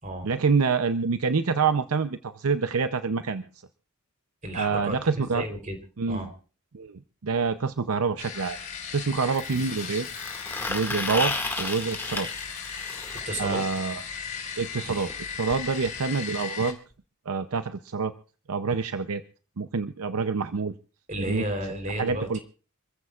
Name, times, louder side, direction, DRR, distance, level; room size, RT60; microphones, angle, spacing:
voice 1, 0.2-3.4 4.5-5.4 6.0-6.3 6.7-8.6 8.9-10.1 10.7-12.3 13.4-14.0 14.6-16.8 17.3-18.1 18.5-19.2 19.6-20.7 21.2-21.4 22.0-22.4, right 5 dB, 80° right, 11 dB, 0.6 m, -27 dB
voice 2, 4.4-5.8 6.1-6.3 13.2-13.6 21.1-22.4, right 1 dB, 35° right, 6 dB, 3.6 m, -32 dB
sound 1, 7.3-7.4 9.3-13.2 15.1-15.2 15.5-15.6 15.9-16.0 16.9-17.0, left 3 dB, 10° left, 2.0 m, -33 dB
sound 2, 8.2-16.7, left 6 dB, 35° left, 3.4 m, -37 dB
27.5 x 15.0 x 2.4 m, 0.38 s
head